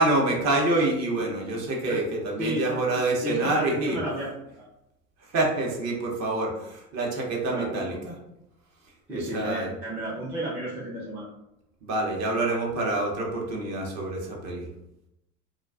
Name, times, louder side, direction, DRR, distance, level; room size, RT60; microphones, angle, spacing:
voice 1, 0.0-4.0 5.3-8.1 9.1-9.7 11.8-14.7, right 2 dB, 35° right, -1 dB, 0.7 m, -26 dB
voice 2, 2.4-2.7 3.2-4.3 4.5-4.7 7.5-8.0 9.1-11.3, equal, 5° right, -7 dB, 0.3 m, -32 dB
2.4 x 2.2 x 2.3 m, 0.85 s
hypercardioid pair, 85°, 46 cm